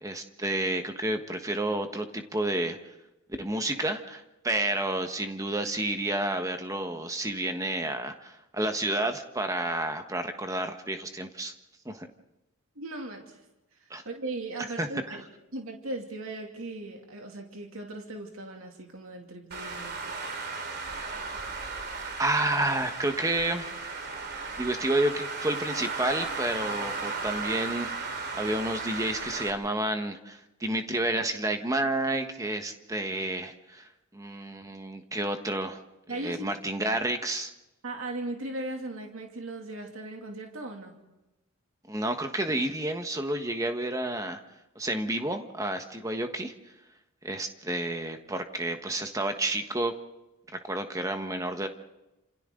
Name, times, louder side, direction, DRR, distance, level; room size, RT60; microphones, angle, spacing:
voice 1, 0.0-2.8 3.4-11.5 11.8-12.1 13.9-14.0 14.8-15.2 22.2-23.7 24.6-35.8 36.1-37.5 41.9-44.4 44.7-46.5 47.2-50.0 50.6-51.7, right 1 dB, 15° right, 6 dB, 1.4 m, -30 dB
voice 2, 12.8-13.4 14.0-15.3 15.5-20.0 36.1-36.5 37.8-40.9, right 2 dB, 70° right, 2 dB, 2.7 m, -38 dB
Traffic noise roadway noise, 19.5-29.5, right 4 dB, 50° right, 2.9 m, -35 dB
29.5 x 27.5 x 3.9 m, 0.97 s
head